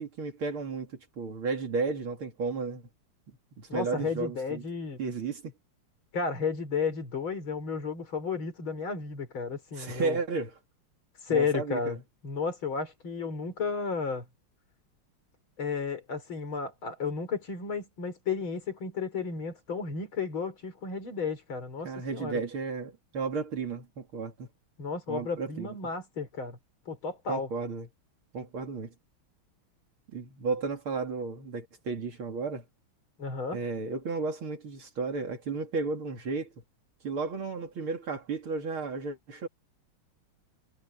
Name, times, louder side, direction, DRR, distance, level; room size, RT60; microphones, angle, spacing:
voice 1, 0.0-2.8 3.6-4.6 5.0-5.5 9.8-10.5 11.3-12.0 21.8-24.5 25.1-25.8 27.3-27.9 28.3-28.9 30.1-32.6 33.5-36.5 37.0-39.5, right 4 dB, 75° right, 3.5 m, -33 dB
voice 2, 3.7-5.0 6.1-10.2 11.2-12.0 12.2-14.3 15.6-22.4 24.8-26.6 26.9-27.5 33.2-33.6, left 5 dB, 70° left, 4.7 m, -33 dB
omnidirectional pair, 2.3 m